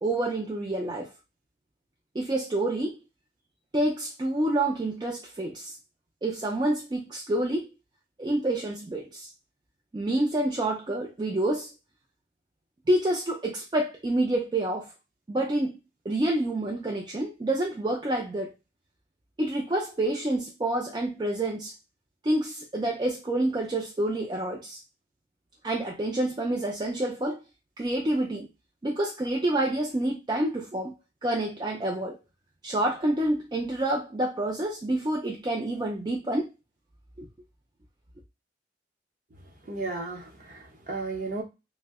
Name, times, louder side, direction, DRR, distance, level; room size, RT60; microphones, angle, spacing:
voice 1, 0.0-1.1 2.1-3.0 3.7-5.7 6.2-7.7 8.2-9.3 9.9-11.7 12.9-14.9 15.3-15.8 16.1-18.5 19.4-21.7 22.2-24.8 25.6-27.4 27.8-28.5 28.8-30.9 31.2-32.2 32.6-36.5 37.2-37.3, right 1 dB, 25° right, 0.3 m, -28 dB
voice 2, 39.7-41.4, right 3 dB, 45° right, 0.7 m, -34 dB
2.6 x 2.1 x 3.4 m
head